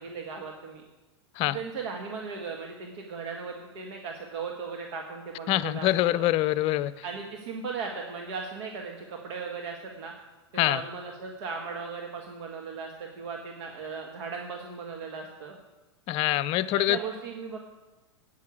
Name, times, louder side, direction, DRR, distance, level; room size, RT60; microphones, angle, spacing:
voice 1, 0.0-0.8 1.5-6.3 7.0-10.1 10.5-15.6 16.7-17.6, right 5 dB, 70° right, 1 dB, 1.7 m, -37 dB
voice 2, 5.5-6.9 10.6-10.8 16.1-17.0, left 15 dB, 40° left, 16 dB, 0.6 m, -25 dB
9.0 x 8.5 x 8.3 m, 1.1 s
hypercardioid pair, 115°, 14 cm